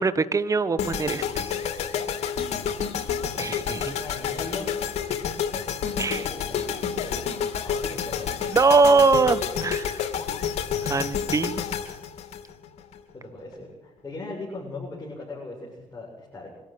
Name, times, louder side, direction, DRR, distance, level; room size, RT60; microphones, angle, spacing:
voice 1, 0.0-1.6 3.4-3.9 6.0-6.3 8.5-10.0 10.8-11.6, right 4 dB, 30° right, 13 dB, 1.3 m, -22 dB
sound 1, 0.8-13.0, left 7 dB, 75° left, 2.8 m, -29 dB
voice 2, 3.3-4.7 6.0-6.7 7.0-7.3 7.6-8.6 11.2-11.5 13.1-16.5, left 2 dB, 25° left, -3 dB, 7.5 m, -39 dB
25.0 x 13.0 x 9.3 m, 1.0 s
cardioid pair, 80°, 11 cm